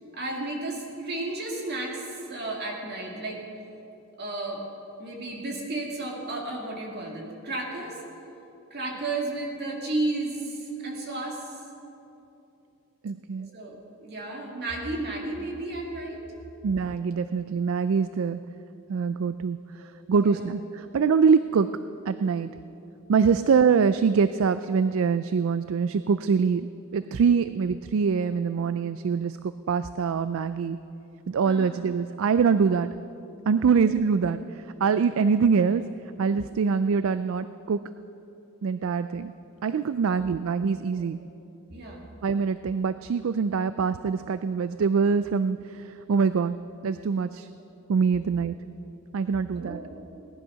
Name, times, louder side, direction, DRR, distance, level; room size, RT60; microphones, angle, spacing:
voice 1, 0.1-3.4 4.2-4.6 5.0-8.0 8.7-11.4 13.4-16.2 19.8-19.9 20.1-20.5 23.4-23.5 28.3-28.4 31.4-31.7 33.7-33.9 41.7-42.0 49.6-49.9, right 2 dB, 45° right, 0 dB, 2.3 m, -33 dB
voice 2, 13.0-13.5 16.6-18.4 18.9-21.7 22.1-22.5 23.1-26.7 26.9-30.8 31.3-32.9 33.5-35.9 36.2-37.8 38.6-39.3 39.6-41.2 42.2-46.6 46.8-47.5 47.9-48.6 49.1-49.8, right 5 dB, 60° right, 12 dB, 0.3 m, -24 dB
18.0 x 11.0 x 5.7 m, 2.8 s
head